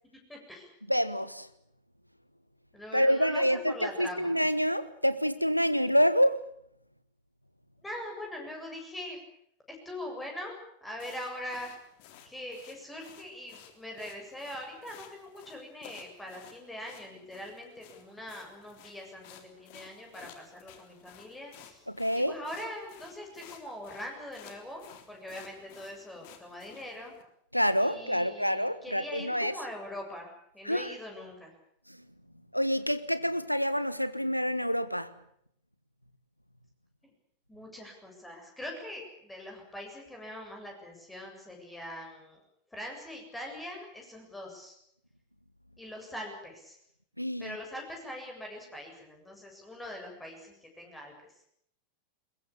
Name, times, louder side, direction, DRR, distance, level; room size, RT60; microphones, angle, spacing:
voice 1, 0.3-0.7 2.7-4.3 7.8-9.2 9.7-10.5 10.8-11.7 12.2-21.9 22.1-24.8 25.1-27.1 27.8-31.5 37.0-37.1 37.5-42.4 42.7-44.8 45.8-46.8 47.4-51.1, left 1 dB, 10° left, 7.6 m, -42 dB
voice 2, 0.9-1.5 2.9-6.4 21.9-22.3 27.5-29.5 30.6-30.9 31.9-32.1 32.5-35.1 47.2-47.6, equal, 90° left, 1.3 m, -27 dB
sound 1, 11.0-27.2, left 9 dB, 45° left, 3.5 m, -55 dB
21.5 x 21.0 x 8.7 m
figure-of-eight pair, 90°, 0 cm